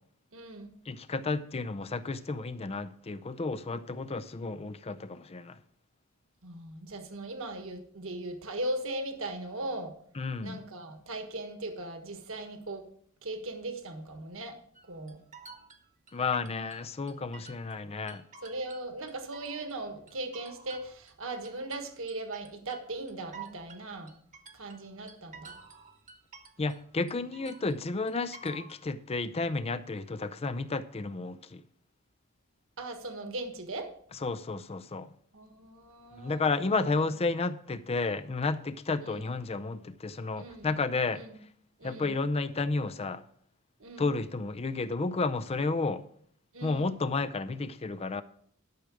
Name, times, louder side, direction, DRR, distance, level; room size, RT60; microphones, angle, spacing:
voice 1, 0.3-0.7 6.4-10.0 10.4-12.8 13.2-14.6 14.9-15.2 18.4-24.1 24.5-25.6 32.8-33.9 35.3-36.4 36.7-36.9 39.0-39.2 40.4-40.7 41.1-41.3 41.8-42.1 43.8-44.1 46.5-46.9, right 2 dB, 60° right, 1.4 m, -38 dB
voice 2, 0.9-5.6 10.2-10.6 16.1-18.2 26.6-31.6 34.2-35.1 36.2-41.2 41.8-43.2 44.0-46.0 46.6-48.2, left 3 dB, 25° left, 0.5 m, -32 dB
sound 1, 14.7-17.8 18.1-19.8 20.1-26.8 27.1-28.8, right 4 dB, 35° right, 1.2 m, -50 dB
12.0 x 6.4 x 4.9 m
head